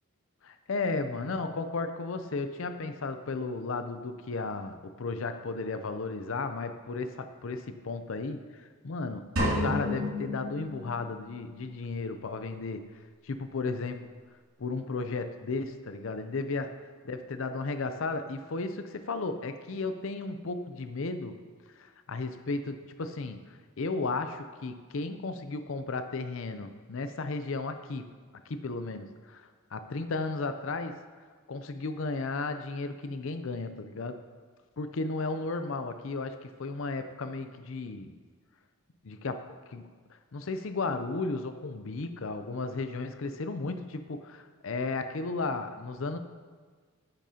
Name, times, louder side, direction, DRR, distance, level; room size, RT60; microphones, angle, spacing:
voice 1, 0.4-12.8 13.2-14.1 14.6-16.7 17.0-21.4 21.8-28.1 28.5-31.0 31.5-34.2 34.8-38.2 39.0-39.9 40.3-46.2, left 3 dB, 65° left, 9 dB, 0.5 m, -34 dB
sound 1, 9.4-11.4, left 1 dB, 85° right, 2.7 m, -31 dB
9.9 x 9.1 x 2.8 m, 1.5 s
head